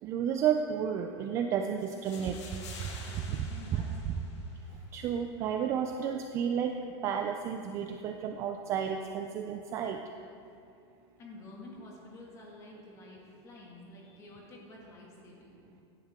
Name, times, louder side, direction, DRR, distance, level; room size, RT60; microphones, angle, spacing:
voice 1, 0.0-2.9 4.0-4.1 4.7-10.0, right 8 dB, 20° right, 5 dB, 0.3 m, -32 dB
sound 1, 1.8-4.8, left 4 dB, 85° left, 2.2 m, -49 dB
voice 2, 3.1-3.9 11.2-15.6, left 2 dB, 20° left, -2 dB, 2.0 m, -50 dB
16.5 x 10.5 x 3.6 m, 2.5 s
supercardioid pair, 175°, 15 cm